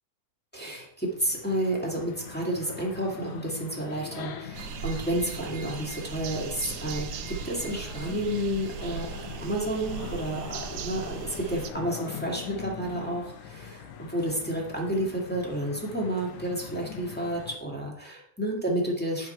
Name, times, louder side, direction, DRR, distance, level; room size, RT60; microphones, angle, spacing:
voice 1, 0.5-9.1 9.4-19.3, right 1 dB, 5° left, -2 dB, 1.1 m, -31 dB
sound 1, 1.0-17.6, left 8 dB, 75° left, 2.1 m, -42 dB
sound 2, 4.5-11.7, right 9 dB, 75° right, 1.5 m, -38 dB
8.5 x 6.8 x 4.4 m, 0.74 s
omnidirectional pair, 3.5 m